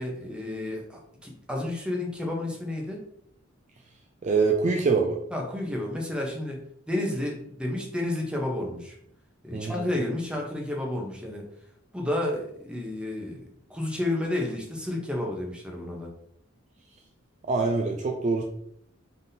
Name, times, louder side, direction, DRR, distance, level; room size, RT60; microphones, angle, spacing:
voice 1, 0.0-3.0 5.3-6.6 6.9-8.9 9.4-11.4 11.9-16.1, left 1 dB, 5° right, -1 dB, 0.8 m, -31 dB
voice 2, 4.2-5.2 9.5-9.8 17.5-18.4, right 4 dB, 35° right, 3 dB, 0.4 m, -24 dB
4.0 x 3.5 x 2.7 m, 0.70 s
head